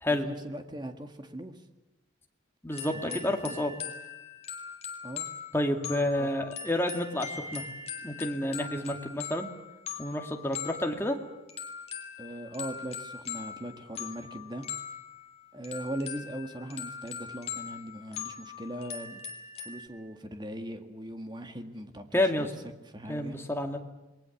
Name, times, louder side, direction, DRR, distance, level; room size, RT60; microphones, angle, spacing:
voice 1, 0.1-1.6 3.1-3.2 3.4-3.6 5.0-5.3 6.2-6.3 12.2-14.7 15.5-19.2 19.6-22.5 22.9-23.4, right 1 dB, 25° right, 6 dB, 1.9 m, -39 dB
voice 2, 2.6-3.7 5.5-7.6 8.0-9.5 10.0-11.2 22.1-22.5 23.1-23.8, left 1 dB, 10° left, 3 dB, 2.2 m, -29 dB
sound 1, 2.7-19.9, left 7 dB, 35° left, 3.0 m, -41 dB
28.0 x 21.0 x 7.3 m, 1.0 s
head